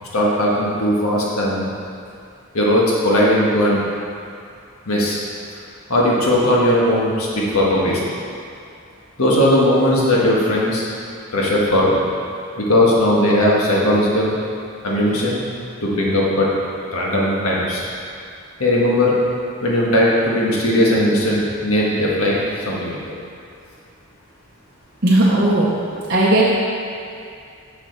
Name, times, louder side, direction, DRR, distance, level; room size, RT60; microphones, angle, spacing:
voice 1, 0.0-1.7 2.5-3.8 4.8-5.2 5.9-8.0 9.2-10.8 11.3-12.0 12.6-14.3 14.8-15.4 15.8-16.5 16.9-17.9 18.6-19.1 19.6-23.0, left 1 dB, 90° left, -4 dB, 1.5 m, -18 dB
voice 2, 25.0-25.7 26.1-26.5, right 1 dB, 45° right, -7 dB, 0.7 m, -15 dB
6.6 x 6.0 x 4.5 m, 2.4 s
head